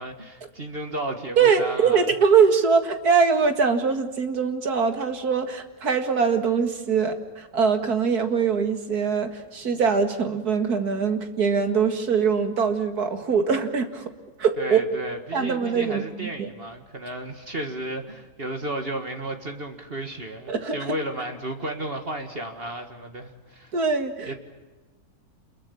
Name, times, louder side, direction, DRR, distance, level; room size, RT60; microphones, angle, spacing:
voice 1, 0.0-2.1 14.6-23.7 24.2-24.3, right 1 dB, 35° right, 5 dB, 2.1 m, -33 dB
voice 2, 1.4-14.1 14.4-14.8 15.3-16.5 20.5-20.8 23.7-24.3, right 6 dB, 75° right, 7 dB, 2.5 m, -22 dB
28.0 x 22.0 x 7.1 m, 1.2 s
omnidirectional pair, 1.7 m